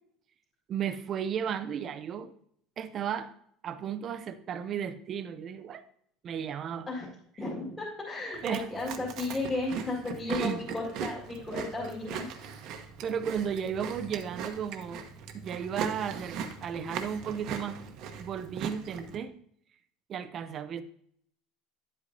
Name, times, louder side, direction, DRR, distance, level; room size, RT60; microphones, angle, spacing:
voice 1, 0.7-2.3 2.8-3.3 3.6-5.8 6.2-6.9 7.4-7.5 8.4-8.9 10.3-10.6 13.0-15.0 15.3-17.8 18.2-19.3 20.1-20.8, right 8 dB, 30° right, 0.5 m, -34 dB
voice 2, 7.4-12.3, left 2 dB, 10° left, 1.9 m, -34 dB
Chewing mastication, 8.3-19.2, right 7 dB, 50° right, 0.9 m, -39 dB
10.5 x 8.1 x 2.7 m
cardioid pair, 170°, 0 cm